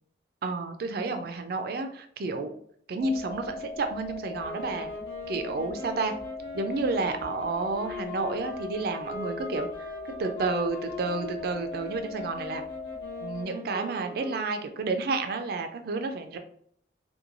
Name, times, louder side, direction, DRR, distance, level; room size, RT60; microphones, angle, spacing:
voice 1, 0.4-2.5 2.9-4.9 5.3-6.1 6.5-9.7 10.2-12.6 13.2-16.4, right 3 dB, 55° right, 6 dB, 0.4 m, -30 dB
sound 1, 3.0-13.4, left 4 dB, 30° left, 0.4 m, -40 dB
sound 2, 4.4-14.8, left 1 dB, 80° left, 1.1 m, -41 dB
3.0 x 2.2 x 2.5 m, 0.63 s
head